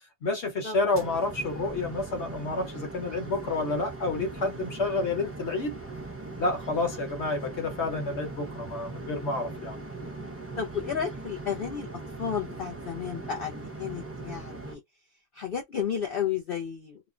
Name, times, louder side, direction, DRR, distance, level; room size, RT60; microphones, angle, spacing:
voice 1, 0.2-5.8 6.4-9.8, left 3 dB, 50° left, 1.1 m, -29 dB
sound 1, 0.9-14.8, right 2 dB, 20° right, 0.4 m, -40 dB
voice 2, 10.6-11.9 12.2-14.8 15.3-17.0, left 7 dB, 80° left, 0.5 m, -32 dB
3.0 x 2.1 x 2.4 m
omnidirectional pair, 1.6 m